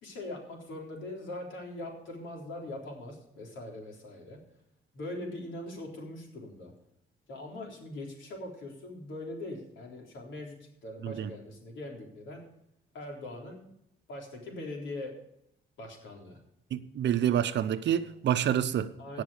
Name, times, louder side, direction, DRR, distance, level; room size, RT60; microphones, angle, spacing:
voice 1, 0.0-4.4 4.9-6.7 7.3-10.6 10.8-12.4 12.9-13.6 14.1-15.1 15.8-16.4 19.0-19.2, left 1 dB, 75° left, 3.8 m, -41 dB
voice 2, 16.7-18.9 19.1-19.2, right 10 dB, 65° right, 0.7 m, -28 dB
17.5 x 6.2 x 4.9 m
cardioid pair, 90°, 20 cm